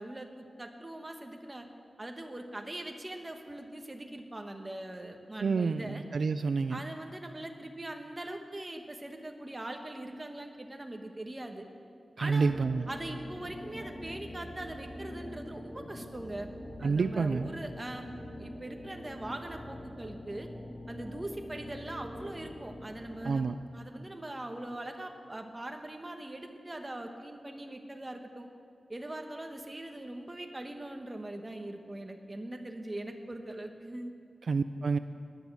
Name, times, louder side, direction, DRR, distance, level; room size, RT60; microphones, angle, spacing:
voice 1, 0.0-1.7 2.0-6.0 6.7-11.7 12.2-12.6 12.9-16.5 16.8-20.5 20.9-28.5 28.9-34.1, right 1 dB, 20° right, 4 dB, 1.2 m, -41 dB
voice 2, 5.4-6.8 12.2-12.9 16.8-17.5 23.2-23.5 34.5-35.0, right 4 dB, 70° right, 11 dB, 0.4 m, -28 dB
sound 1, 12.4-23.3, left 1 dB, 25° left, 1.9 m, -45 dB
17.5 x 11.0 x 6.1 m, 2.5 s
wide cardioid pair, 140°, 0 cm